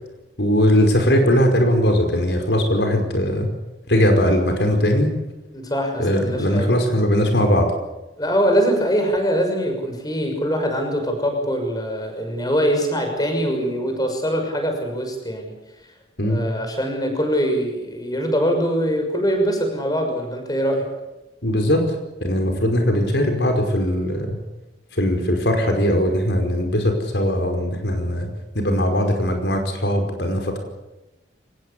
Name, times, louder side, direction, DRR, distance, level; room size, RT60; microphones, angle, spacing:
voice 1, 0.4-3.5 3.9-5.1 6.0-7.7 16.2-16.4 21.4-21.9 22.2-24.4 24.9-28.3 28.6-30.6, equal, 75° left, 4 dB, 5.2 m, -19 dB
voice 2, 5.5-6.7 8.2-15.5 16.2-20.9, equal, 20° left, 4 dB, 6.2 m, -23 dB
24.5 x 20.0 x 8.4 m, 1.0 s
head